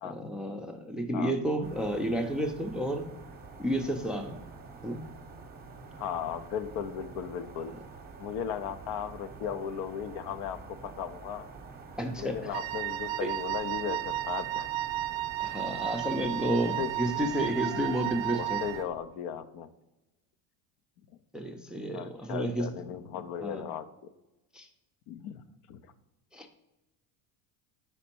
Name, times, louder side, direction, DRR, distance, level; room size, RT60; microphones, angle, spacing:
voice 1, 0.0-3.1 3.6-4.4 4.8-5.0 12.0-12.4 13.2-13.3 15.4-18.6 21.3-22.7 23.4-23.7 24.5-24.7 26.3-26.5, right 1 dB, ahead, 4 dB, 0.5 m, -31 dB
sound 1, 1.6-18.9, right 4 dB, 20° right, 0.8 m, -47 dB
voice 2, 6.0-7.8 8.2-11.5 12.2-14.7 16.8-16.9 17.7-17.9 18.3-19.7 21.9-23.9 25.1-25.4 25.7-25.8, left 8 dB, 60° left, 10 dB, 0.6 m, -36 dB
Wind instrument woodwind instrument, 12.5-18.9, right 14 dB, 55° right, 0.5 m, -33 dB
5.0 x 4.4 x 4.4 m, 0.99 s
supercardioid pair, 95°, 44 cm